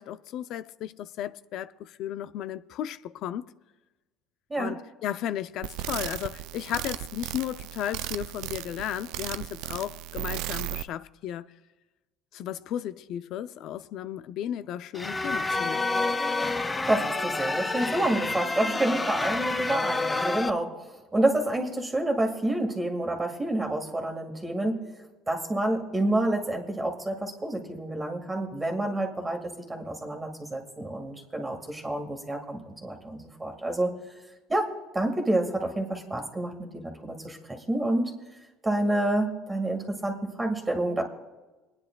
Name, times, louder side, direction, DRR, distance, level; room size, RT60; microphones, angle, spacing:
voice 1, 0.0-3.5 4.5-11.5 12.3-16.0, left 11 dB, 65° left, 0.4 m, -34 dB
sound 1, 5.6-10.8, right 15 dB, 80° right, 0.3 m, -35 dB
sound 2, 14.9-20.5, left 3 dB, 15° left, 0.6 m, -28 dB
voice 2, 16.9-24.8 25.3-33.9 34.5-38.1 38.6-41.0, right 1 dB, 15° right, 1.7 m, -28 dB
28.5 x 9.7 x 2.3 m
cardioid pair, 110°, 0 cm